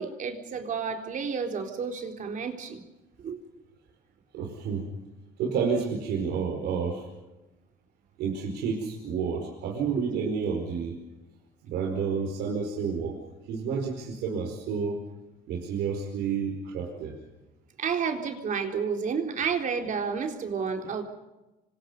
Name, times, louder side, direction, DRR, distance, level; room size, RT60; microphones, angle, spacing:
voice 1, 0.0-2.8 3.2-3.4 10.0-10.1 17.8-21.0, right 6 dB, 50° right, 3 dB, 3.9 m, -30 dB
voice 2, 4.3-4.9 5.4-7.0 8.2-10.9 11.6-13.2 13.5-15.0 15.5-17.1, right 6 dB, 80° right, 1 dB, 4.9 m, -30 dB
28.0 x 25.0 x 5.4 m, 1.1 s
cardioid pair, 110°, 17 cm